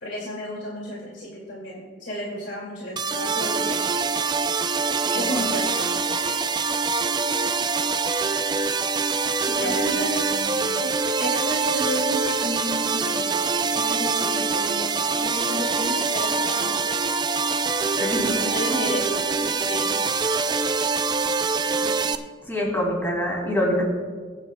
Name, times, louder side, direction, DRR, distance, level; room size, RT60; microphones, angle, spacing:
voice 1, 0.0-3.8 5.1-6.0 9.6-10.3 10.7-13.4 13.7-16.9 18.2-19.2 19.5-20.0, equal, 70° left, -4 dB, 2.3 m, -32 dB
sound 1, 3.0-22.2, right 4 dB, 20° right, 0.4 m, -24 dB
voice 2, 5.1-5.5 9.4-9.8 10.2-10.5 18.0-18.8 19.1-19.2 21.8-22.0 22.5-23.8, equal, 10° left, -2 dB, 2.8 m, -27 dB
23.5 x 9.6 x 2.3 m, 1.5 s
head